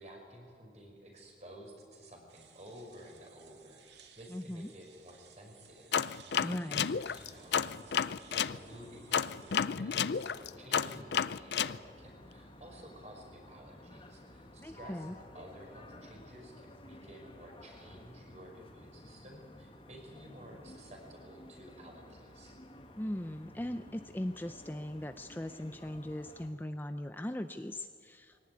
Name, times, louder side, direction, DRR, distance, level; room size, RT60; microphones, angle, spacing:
voice 1, 0.0-22.6 28.3-28.4, equal, 40° right, 1 dB, 5.3 m, -53 dB
sound 1, 2.3-9.6, right 7 dB, 85° right, 2.2 m, -60 dB
voice 2, 4.3-4.7 6.4-6.9 14.6-15.1 23.0-28.4, left 1 dB, 10° left, 8 dB, 0.5 m, -39 dB
sound 2, 5.9-8.6 9.1-11.8, left 7 dB, 70° left, 0.5 m, -31 dB
sound 3, 6.7-26.5, left 1 dB, 30° left, 1.8 m, -54 dB
22.5 x 17.5 x 9.5 m, 2.2 s
head